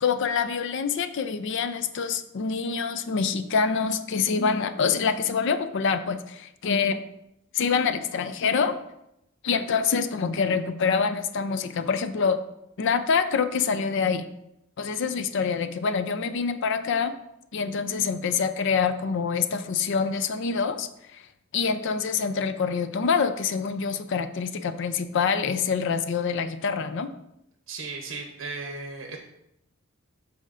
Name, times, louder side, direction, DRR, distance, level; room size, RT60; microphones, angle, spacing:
voice 1, 0.0-7.0 7.5-8.8 9.4-12.4 12.8-14.3 14.8-17.1 17.5-21.2 21.5-27.1, left 5 dB, 60° left, 10 dB, 0.4 m, -26 dB
voice 2, 27.7-29.2, right 3 dB, 65° right, 2 dB, 0.7 m, -36 dB
12.0 x 4.2 x 2.5 m, 0.83 s
head